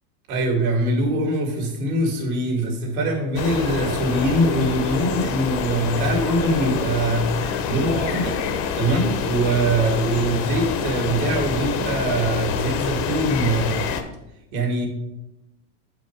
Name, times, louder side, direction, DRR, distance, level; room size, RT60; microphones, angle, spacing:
voice 1, 0.3-8.4 8.7-13.9 14.5-14.9, right 1 dB, 70° right, 1 dB, 2.2 m, -23 dB
sound 1, 3.3-14.0, left 6 dB, 35° left, 0.6 m, -26 dB
7.8 x 5.1 x 4.5 m, 0.90 s
supercardioid pair, 155°, 45 cm